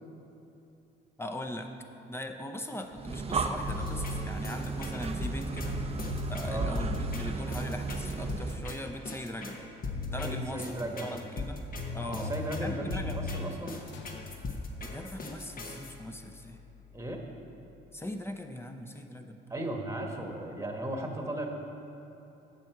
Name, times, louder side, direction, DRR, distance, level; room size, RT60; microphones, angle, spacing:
voice 1, 1.2-1.7 2.1-5.8 6.3-9.6 10.1-10.8 11.0-11.6 11.9-12.3 12.6-13.2 14.8-16.6 17.9-19.4, left 1 dB, 10° left, 5 dB, 0.7 m, -40 dB
Breathing, 2.9-8.7, right 4 dB, 30° right, 0.5 m, -34 dB
sound 1, 3.7-15.9, left 3 dB, 45° left, 1.1 m, -37 dB
voice 2, 10.1-11.1 11.9-13.8 16.9-17.2 19.5-21.5, right 1 dB, 15° right, 2 dB, 1.2 m, -36 dB
sound 2, 13.9-18.5, left 7 dB, 65° left, 0.7 m, -52 dB
7.6 x 7.0 x 5.9 m, 3.0 s
cardioid pair, 90°, 20 cm